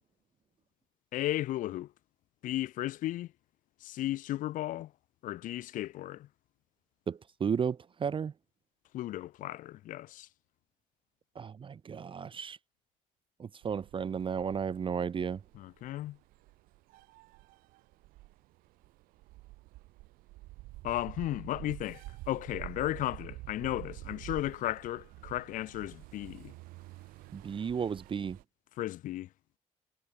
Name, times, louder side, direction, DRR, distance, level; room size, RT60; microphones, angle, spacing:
voice 1, 1.1-1.9 2.4-3.3 3.8-4.9 5.2-6.3 8.9-10.3 15.5-16.2 20.8-26.5 28.8-29.3, left 14 dB, 60° left, 0.9 m, -35 dB
voice 2, 7.1-8.3 11.4-12.6 13.4-15.4 27.3-28.4, right 7 dB, 35° right, 0.6 m, -33 dB
sound 1, 13.6-28.4, right 20 dB, 70° right, 3.6 m, -49 dB
hypercardioid pair, 50°, 15 cm